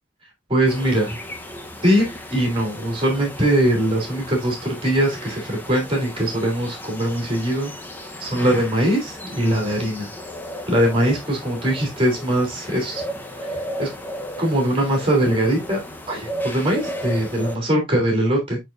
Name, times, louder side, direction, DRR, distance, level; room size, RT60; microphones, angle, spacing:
voice 1, 0.5-1.2 1.8-4.6 4.8-7.7 8.2-10.1 10.7-13.0 13.4-13.9 14.4-15.8 16.1-18.6, right 1 dB, 25° right, 3.0 m, -21 dB
sound 1, 0.6-17.6, equal, 10° left, 0.8 m, -35 dB
8.8 x 4.3 x 2.5 m
head